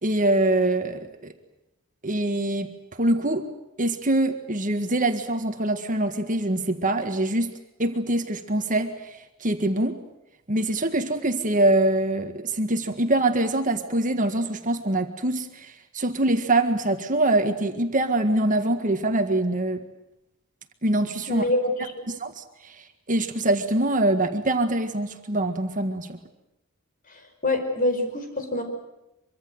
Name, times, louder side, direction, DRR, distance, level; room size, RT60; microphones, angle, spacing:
voice 1, 0.0-1.3 2.0-2.7 3.0-3.5 3.8-7.5 7.8-9.9 10.5-19.8 20.8-21.4 22.1-26.2, right 1 dB, 40° right, 7 dB, 1.8 m, -24 dB
voice 2, 21.3-22.1 27.1-28.6, left 1 dB, 40° left, 5 dB, 5.1 m, -26 dB
25.0 x 24.0 x 7.9 m, 0.91 s
head